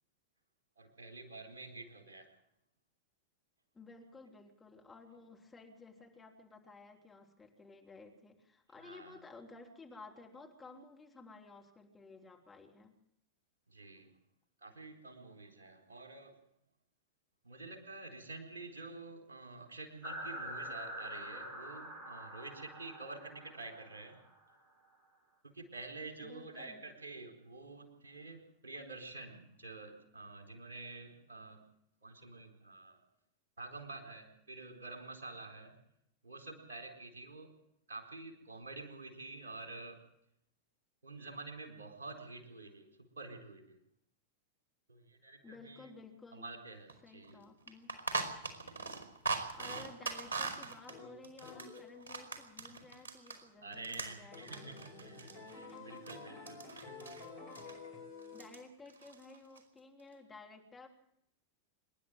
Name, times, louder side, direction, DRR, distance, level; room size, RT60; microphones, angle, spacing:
voice 1, 0.8-2.3 8.8-9.2 13.7-14.1 14.6-16.4 17.4-24.2 25.4-31.6 32.0-33.0 33.6-35.8 36.2-37.5 37.9-40.0 41.0-43.8 44.9-45.9 46.3-47.4 53.6-56.9, right 3 dB, 70° right, 4 dB, 4.3 m, -48 dB
voice 2, 3.7-13.0 26.2-26.8 45.4-46.5 47.0-47.9 49.5-54.7 55.7-55.9 58.3-60.9, left 3 dB, 15° left, 0 dB, 3.2 m, -54 dB
sound 1, 20.0-24.4, right 1 dB, 35° right, 5.4 m, -45 dB
sound 2, 46.9-47.0 47.2-47.3 47.7-53.4 53.7-56.2 56.5-57.3 57.5-57.7 58.2-58.6 58.9-59.6, right 4 dB, 85° left, 4.1 m, -41 dB
sound 3, 50.9-52.4 54.3-58.5, left 4 dB, 60° left, 7.0 m, -51 dB
26.0 x 11.0 x 9.2 m, 0.74 s
figure-of-eight pair, 90°, 0 cm